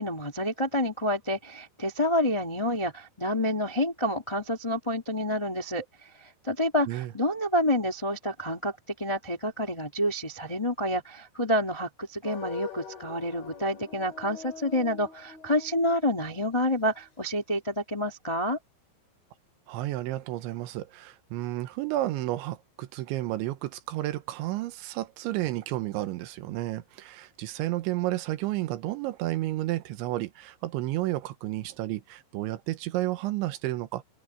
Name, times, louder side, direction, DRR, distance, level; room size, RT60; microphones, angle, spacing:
voice 1, 0.0-18.6, left 1 dB, 25° left, 0.6 m, -28 dB
sound 1, 12.2-17.1, left 7 dB, 70° left, 8.3 m, -44 dB
voice 2, 19.7-34.0, right 16 dB, 80° right, 3.3 m, -31 dB
open air
omnidirectional pair, 5.4 m